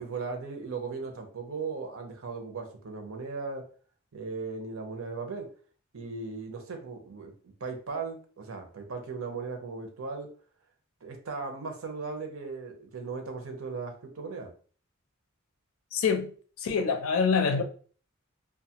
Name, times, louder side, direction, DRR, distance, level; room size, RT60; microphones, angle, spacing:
voice 1, 0.0-3.6 4.1-5.5 5.9-7.3 7.6-10.3 11.0-14.5, right 4 dB, 85° right, 0.7 m, -37 dB
voice 2, 15.9-16.3 16.6-17.6, left 5 dB, 90° left, 0.5 m, -25 dB
2.6 x 2.3 x 2.8 m
head